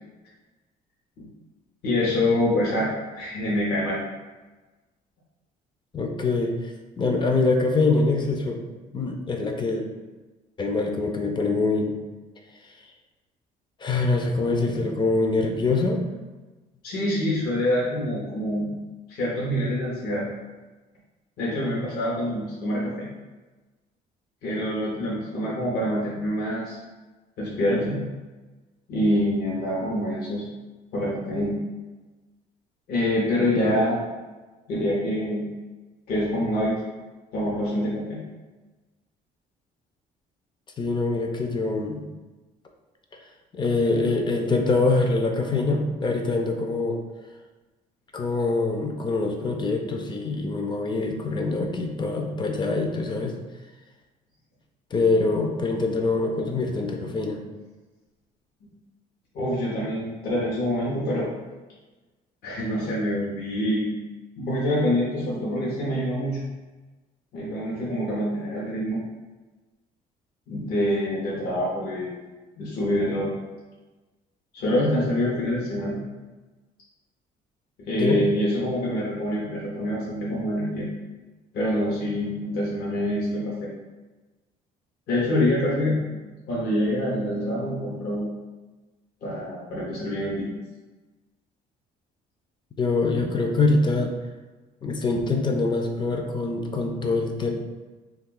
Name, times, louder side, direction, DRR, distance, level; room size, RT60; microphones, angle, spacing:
voice 1, 1.8-4.0 16.8-18.7 19.1-20.3 21.4-23.1 24.4-26.8 27.4-28.0 28.9-30.5 30.9-31.6 32.9-34.0 34.7-35.5 36.1-36.7 37.3-38.2 58.6-58.7 59.3-61.3 62.4-63.9 64.4-66.4 67.3-69.0 70.5-72.2 72.6-73.3 74.5-76.0 77.8-80.9 81.5-83.7 85.1-86.2 86.5-88.3 89.2-90.5, left 1 dB, 70° left, -6 dB, 0.8 m, -26 dB
voice 2, 5.9-8.6 8.9-9.8 10.6-12.0 13.8-16.0 33.6-33.8 40.8-42.0 43.5-47.0 48.1-53.4 54.9-57.4 78.0-78.2 92.8-94.2 94.8-97.5, left 3 dB, 25° left, 3 dB, 0.4 m, -24 dB
2.3 x 2.3 x 3.7 m, 1.2 s
cardioid pair, 110°, 17 cm